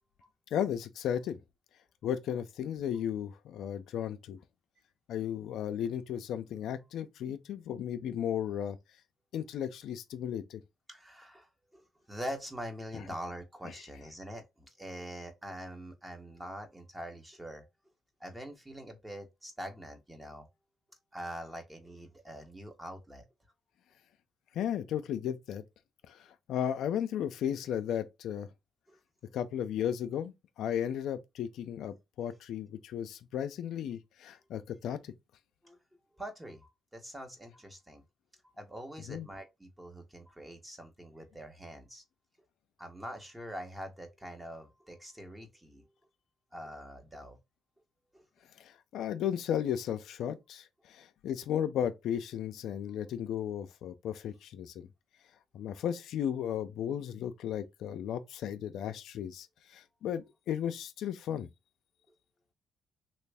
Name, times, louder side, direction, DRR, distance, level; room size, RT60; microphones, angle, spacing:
voice 1, 0.5-1.4 2.0-4.4 5.1-8.8 9.3-10.6 12.9-13.0 24.5-25.6 26.1-26.2 26.5-28.5 29.3-35.1 39.1-39.3 48.6-54.9 55.5-61.5, left 9 dB, 80° left, 0.4 m, -35 dB
voice 2, 10.9-11.5 11.7-17.6 18.2-20.5 21.1-23.2 28.9-29.0 35.6-35.8 36.2-38.0 38.6-42.0 42.8-45.8 46.5-47.4 48.1-48.2, equal, 10° right, 1.1 m, -44 dB
3.1 x 2.4 x 3.4 m
cardioid pair, 90°, 0 cm